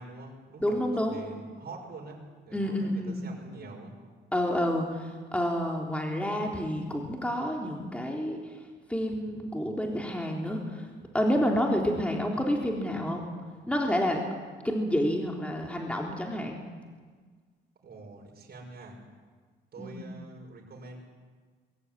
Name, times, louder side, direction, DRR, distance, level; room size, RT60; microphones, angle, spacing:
voice 1, 0.0-4.0 17.8-19.0 19.7-21.0, right 3 dB, 50° right, 0 dB, 6.0 m, -45 dB
voice 2, 0.6-1.2 2.5-3.2 4.3-8.4 8.9-10.9 11.1-13.3 13.7-14.2 14.6-16.6 19.8-20.2, equal, 5° left, 0 dB, 3.6 m, -29 dB
22.0 x 16.5 x 9.6 m, 1.5 s
cardioid pair, 90°, 20 cm